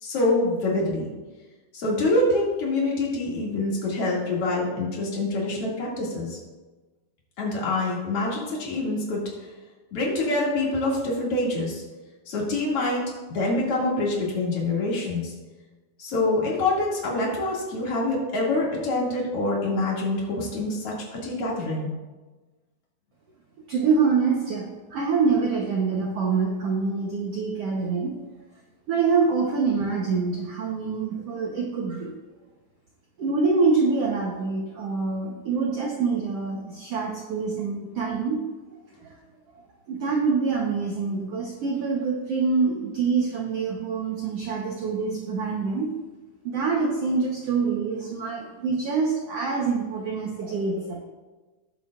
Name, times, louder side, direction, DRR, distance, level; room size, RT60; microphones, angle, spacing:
voice 1, 0.0-1.1 1.7-6.4 7.4-9.2 9.9-11.8 12.3-13.0 13.3-15.3 16.0-21.9, left 2 dB, 45° left, -4 dB, 3.0 m, -25 dB
voice 2, 23.7-28.2 28.9-32.1 33.2-38.4 39.0-39.1 39.9-45.9 46.4-51.0, right 4 dB, 80° right, -1 dB, 1.3 m, -25 dB
18.5 x 7.3 x 2.5 m, 1.2 s
omnidirectional pair, 4.2 m